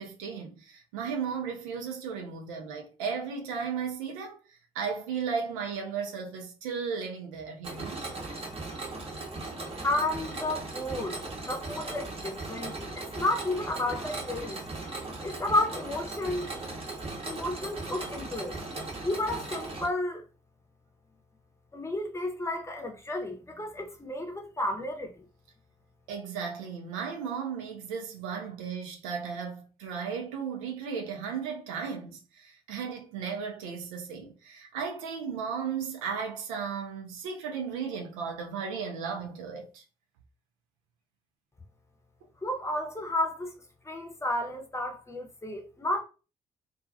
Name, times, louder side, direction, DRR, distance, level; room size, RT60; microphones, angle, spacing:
voice 1, 0.0-8.1 26.1-39.8, right 6 dB, 75° right, 0.5 m, -35 dB
Mechanisms, 7.6-19.9, right 2 dB, 35° right, 0.9 m, -38 dB
voice 2, 9.8-12.9 13.2-14.6 15.2-16.5 17.3-18.6 19.0-20.2 21.7-25.3 42.4-43.5 43.8-46.0, left 1 dB, 15° left, 0.7 m, -32 dB
2.4 x 2.2 x 2.5 m
figure-of-eight pair, 45°, 18 cm